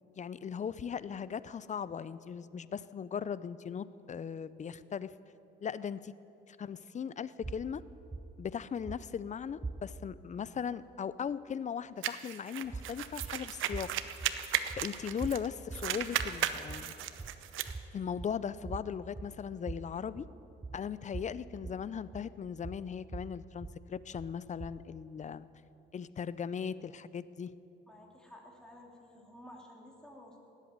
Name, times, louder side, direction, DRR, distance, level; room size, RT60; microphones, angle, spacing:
voice 1, 0.1-5.1 5.6-6.1 6.5-7.8 8.4-13.9 14.8-16.9 17.9-20.3 20.7-25.5 25.9-27.5, left 7 dB, 35° left, 17 dB, 0.5 m, -38 dB
sound 1, 7.4-10.2 12.6-25.0, right 3 dB, 15° right, 0.6 m, -45 dB
sound 2, 12.0-15.5 15.7-17.7, right 11 dB, 85° right, 0.8 m, -35 dB
voice 2, 27.9-30.4, left 1 dB, 5° left, -1 dB, 2.8 m, -53 dB
18.0 x 8.3 x 9.5 m, 2.9 s
cardioid pair, 90°, 20 cm